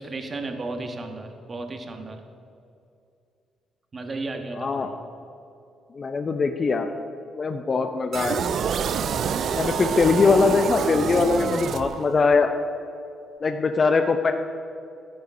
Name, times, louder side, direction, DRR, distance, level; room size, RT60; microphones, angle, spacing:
voice 1, 0.0-2.2 3.9-4.9, right 2 dB, 35° right, 5 dB, 1.4 m, -34 dB
voice 2, 4.6-4.9 6.0-6.9 7.4-8.4 9.5-12.5 13.4-14.3, left 4 dB, 40° left, 6 dB, 0.6 m, -21 dB
sound 1, 8.1-12.3, right 7 dB, 65° right, 0.5 m, -27 dB
11.5 x 9.3 x 5.3 m, 2.6 s
cardioid pair, 90°, 0 cm